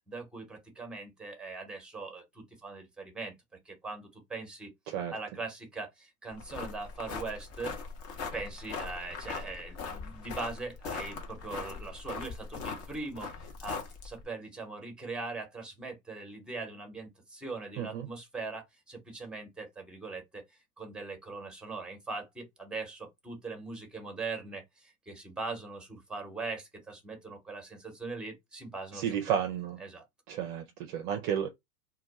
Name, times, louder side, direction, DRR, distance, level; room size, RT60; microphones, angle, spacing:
voice 1, 0.1-3.3 3.6-4.7 5.1-7.8 8.3-20.4 20.8-29.4 29.8-30.0, right 3 dB, ahead, 0.9 m, -41 dB
sound 1, 6.3-14.3, left 5 dB, 30° left, 0.8 m, -40 dB
voice 2, 17.8-18.1 28.9-29.8 30.3-31.5, right 8 dB, 35° right, 0.5 m, -32 dB
2.3 x 2.2 x 3.9 m
hypercardioid pair, 100°, 45 cm